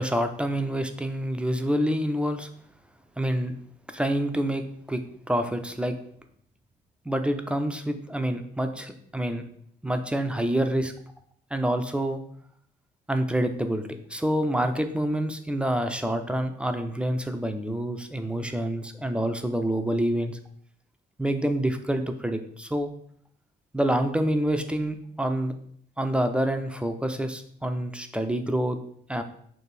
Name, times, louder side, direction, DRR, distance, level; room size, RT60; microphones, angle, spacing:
voice 1, 0.0-2.5 3.2-3.5 3.9-4.6 4.9-5.0 5.3-6.0 7.1-9.4 9.8-10.9 11.5-12.2 13.1-13.8 14.1-20.4 21.2-22.9 23.7-25.5 26.0-28.8 29.1-29.2, right 1 dB, 5° right, 6 dB, 0.3 m, -27 dB
3.3 x 2.5 x 4.2 m, 0.64 s
cardioid pair, 90°, 20 cm